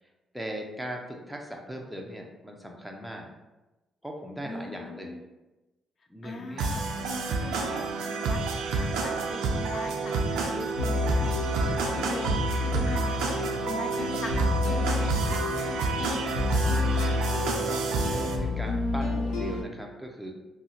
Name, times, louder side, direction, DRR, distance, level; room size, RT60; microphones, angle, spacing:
voice 1, 0.3-3.3 4.0-5.2 6.1-6.8 13.1-13.9 17.2-17.7 18.0-20.3, equal, 5° right, 1 dB, 0.5 m, -39 dB
voice 2, 4.4-5.2 6.2-11.7 12.1-15.0 15.3-15.8 16.0-17.4, left 2 dB, 45° left, 4 dB, 0.5 m, -41 dB
sound 1, 6.6-18.4, right 4 dB, 90° right, 0.4 m, -29 dB
sound 2, 10.8-19.6, left 3 dB, 85° left, 0.8 m, -30 dB
2.7 x 2.1 x 3.8 m, 1.1 s
cardioid pair, 90°, 0 cm